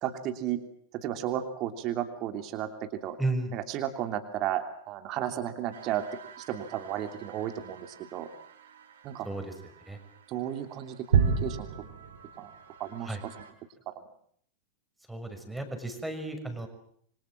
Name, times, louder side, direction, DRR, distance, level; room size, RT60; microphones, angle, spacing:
voice 1, 0.0-0.6 1.0-3.2 3.5-6.0 6.4-8.3 9.0-9.3 10.3-11.7 12.4-12.5 12.8-13.3, right 11 dB, 35° right, 7 dB, 3.1 m, -33 dB
voice 2, 3.2-3.5 9.2-9.5 9.9-10.0 13.1-13.2 15.1-16.7, right 2 dB, 5° right, 6 dB, 6.0 m, -33 dB
sound 1, 5.7-13.5, right 6 dB, 60° right, 4.4 m, -34 dB
27.5 x 25.0 x 7.7 m, 0.65 s
figure-of-eight pair, 90°, 0 cm